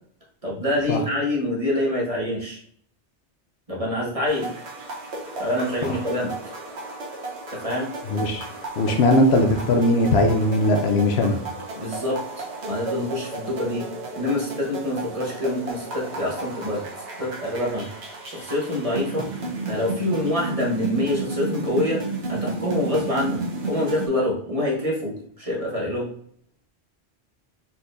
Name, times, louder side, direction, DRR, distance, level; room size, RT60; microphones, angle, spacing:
voice 1, 0.4-2.6 3.7-4.5 5.4-6.3 7.5-7.9 11.8-13.8 14.1-16.8 17.2-17.9 18.2-19.3 19.7-22.0 22.3-23.4 23.7-26.1, left 1 dB, 35° right, -4 dB, 1.3 m, -26 dB
sound 1, 4.3-24.1, right 3 dB, 80° right, 1.3 m, -33 dB
voice 2, 8.1-8.5 8.8-11.4, left 1 dB, 70° left, 5 dB, 0.9 m, -19 dB
4.3 x 4.3 x 2.6 m, 0.63 s
omnidirectional pair, 1.1 m